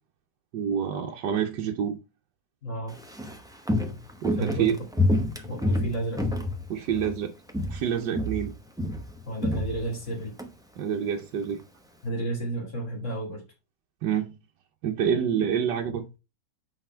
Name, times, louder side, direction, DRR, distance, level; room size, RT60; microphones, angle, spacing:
voice 1, 0.5-2.0 4.2-4.7 6.7-7.3 7.7-8.5 10.8-11.6 14.0-14.4 14.8-16.2, right 8 dB, 75° right, 1.4 m, -27 dB
voice 2, 2.6-3.0 4.4-4.8 5.4-6.2 9.3-10.3 12.0-13.4, right 1 dB, 40° left, 2.5 m, -32 dB
Walk footsteps, 2.9-7.2 7.5-7.9 8.1-10.5 10.8-10.9, left 1 dB, 5° right, 0.4 m, -28 dB
8.1 x 4.3 x 4.3 m
omnidirectional pair, 1.9 m